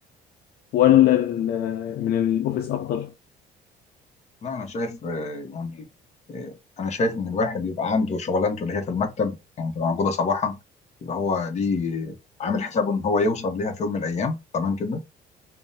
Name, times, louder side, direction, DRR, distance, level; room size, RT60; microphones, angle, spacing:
voice 1, 0.7-3.1, left 12 dB, 65° left, 0.4 m, -21 dB
voice 2, 4.4-5.9 6.3-10.6 11.0-15.0, left 4 dB, 40° left, 0.8 m, -26 dB
3.4 x 2.0 x 2.7 m
cardioid pair, 110°, 17 cm